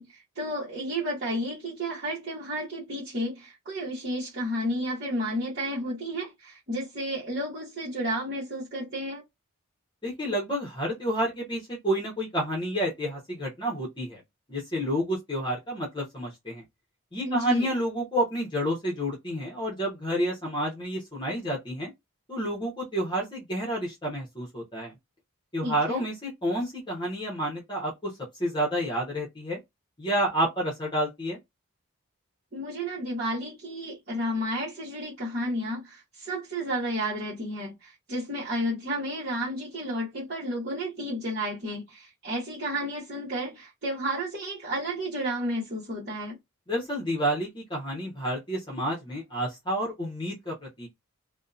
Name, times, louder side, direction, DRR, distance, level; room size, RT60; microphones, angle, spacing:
voice 1, 0.0-9.2 17.2-17.7 25.6-26.0 32.5-46.4, equal, 45° right, 1.0 m, -32 dB
voice 2, 10.0-14.2 14.5-16.6 17.1-21.9 22.3-24.9 25.5-28.1 28.4-29.6 30.0-31.4 46.7-50.9, right 1 dB, 20° left, 0.8 m, -29 dB
2.7 x 2.2 x 2.4 m
head